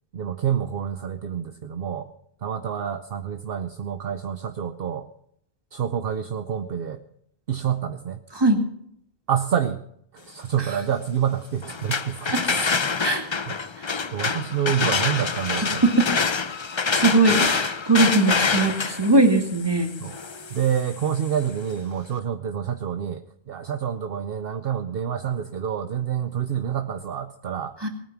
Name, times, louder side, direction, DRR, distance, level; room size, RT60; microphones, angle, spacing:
voice 1, 0.1-2.1 2.4-5.1 5.7-7.0 7.5-8.2 9.3-9.8 10.1-12.7 13.5-13.6 14.1-15.8 20.0-20.1 20.5-27.7, right 8 dB, 60° right, 8 dB, 0.9 m, -27 dB
sound 1, 11.6-21.5, left 5 dB, 35° left, 0.5 m, -26 dB
voice 2, 16.9-19.9 27.8-27.9, right 2 dB, 20° right, 3 dB, 2.1 m, -20 dB
19.0 x 9.2 x 6.0 m, 0.71 s
omnidirectional pair, 1.2 m